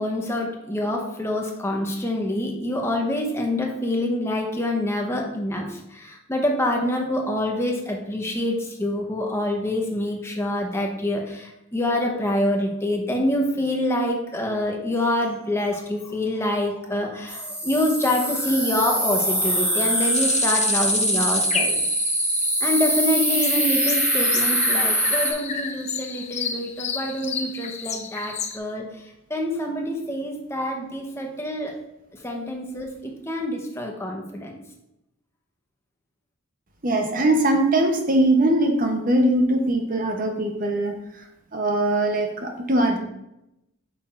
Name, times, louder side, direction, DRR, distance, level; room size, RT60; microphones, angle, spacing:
voice 1, 0.0-21.8 22.6-28.8 29.3-31.7 32.2-34.6, left 1 dB, 10° left, 1 dB, 0.8 m, -26 dB
sound 1, 17.3-25.3, equal, 5° right, 1.1 m, -23 dB
sound 2, 20.1-28.6, left 6 dB, 30° left, 0.5 m, -32 dB
voice 2, 36.8-40.9 41.5-43.0, right 1 dB, 40° right, 3 dB, 0.8 m, -21 dB
8.3 x 5.8 x 2.5 m, 0.88 s
head